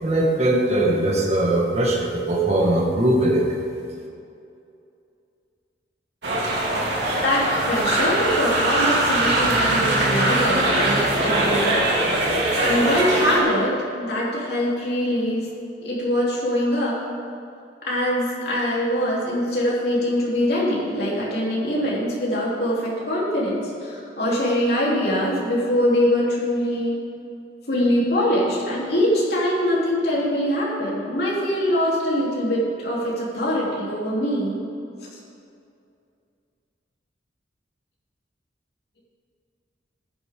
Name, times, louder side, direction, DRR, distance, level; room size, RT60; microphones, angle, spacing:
voice 1, 0.0-3.6, right 1 dB, 35° right, -3 dB, 1.8 m, -20 dB
sound 1, 6.2-13.4, right 1 dB, 75° right, 2.6 m, -21 dB
voice 2, 7.2-11.9 12.6-15.5 15.8-17.0 17.8-27.0 27.7-34.6, equal, 60° left, -6 dB, 3.5 m, -23 dB
14.5 x 11.0 x 3.8 m, 2.5 s
head